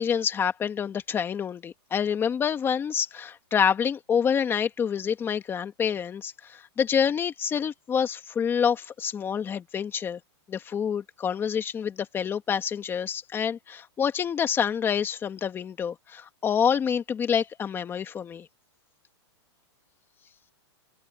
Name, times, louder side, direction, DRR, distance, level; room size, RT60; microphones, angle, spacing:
voice 1, 0.0-10.2 10.5-18.5, left 7 dB, 15° left, 2.1 m, -27 dB
hypercardioid pair, 155°, 14 cm